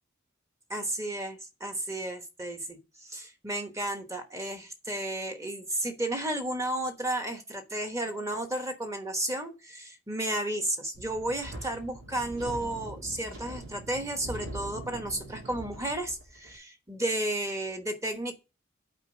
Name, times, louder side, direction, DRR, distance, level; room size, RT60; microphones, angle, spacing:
voice 1, 0.7-18.3, right 1 dB, 15° right, 6 dB, 1.1 m, -33 dB
Wind, 10.9-16.6, right 1 dB, 80° right, 2.9 m, -42 dB
8.1 x 4.5 x 5.2 m, 0.29 s
head